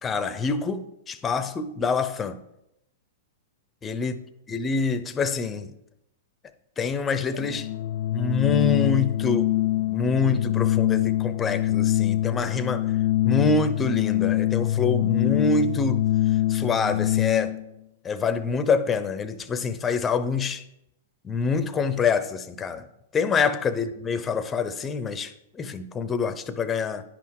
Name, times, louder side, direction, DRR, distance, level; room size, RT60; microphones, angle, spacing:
voice 1, 0.0-2.4 3.8-4.2 4.5-5.7 6.8-7.7 8.1-9.5 9.9-12.9 13.2-16.0 16.5-17.6 18.0-20.6 21.2-22.9 23.1-27.0, left 4 dB, 20° left, 0.6 m, -26 dB
Organ, 7.3-17.7, left 14 dB, 65° left, 0.4 m, -24 dB
10.0 x 5.7 x 4.7 m
hypercardioid pair, 135°, 0 cm